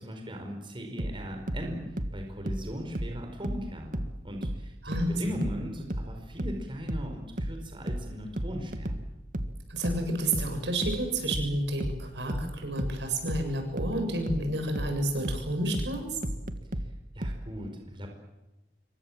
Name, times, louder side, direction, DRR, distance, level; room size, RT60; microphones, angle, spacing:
voice 1, 0.0-9.0 17.1-18.1, equal, 30° right, 3 dB, 5.0 m, -38 dB
sound 1, 1.0-4.2 4.4-17.5, right 1 dB, 50° right, 1.7 m, -33 dB
voice 2, 4.8-5.3 9.7-16.2, right 1 dB, 80° right, 5 dB, 7.6 m, -30 dB
27.0 x 23.5 x 7.6 m, 1.0 s
head